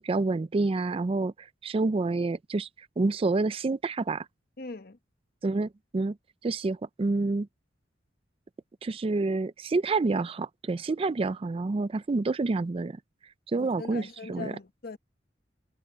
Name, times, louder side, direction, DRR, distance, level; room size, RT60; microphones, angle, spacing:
voice 1, 0.0-2.7 3.0-4.3 5.4-6.2 6.4-7.5 8.8-13.0 13.5-14.5, right 3 dB, 30° right, 0.4 m, -28 dB
voice 2, 4.6-5.0 13.6-15.0, left 4 dB, 55° left, 1.1 m, -41 dB
head